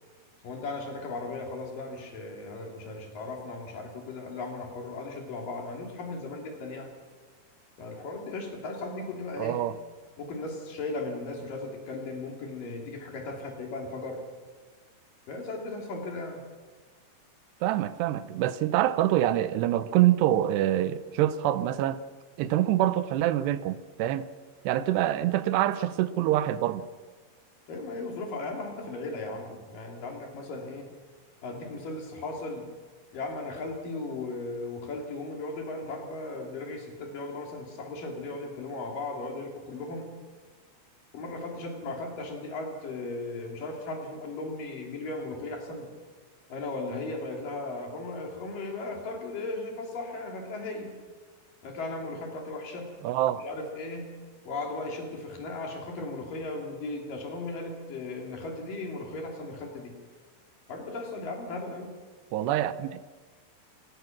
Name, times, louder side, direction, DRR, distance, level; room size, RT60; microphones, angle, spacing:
voice 1, 0.4-6.9 7.8-9.6 10.2-14.2 15.3-16.4 24.8-24.9 27.7-30.9 31.4-32.7 33.1-40.1 41.1-45.9 46.5-50.9 51.6-52.9 53.4-54.1 54.4-59.9 60.7-61.9, left 2 dB, 55° left, 4.6 m, -36 dB
voice 2, 9.4-9.7 17.6-22.0 22.4-24.3 24.6-26.9 53.0-53.4 62.3-63.0, right 13 dB, 85° right, 2.9 m, -25 dB
28.0 x 17.0 x 6.1 m
omnidirectional pair, 4.8 m